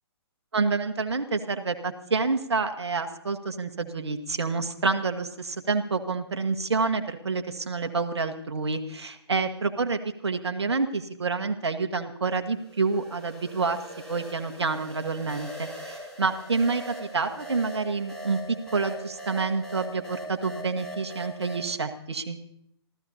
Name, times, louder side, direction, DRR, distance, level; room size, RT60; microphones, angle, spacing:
voice 1, 0.5-13.8 14.1-18.4 18.7-22.4, right 4 dB, 75° right, 7 dB, 1.5 m, -28 dB
sound 1, 12.6-21.7, right 1 dB, 5° left, 4.3 m, -41 dB
27.0 x 15.0 x 2.8 m, 0.73 s
figure-of-eight pair, 130°, 14 cm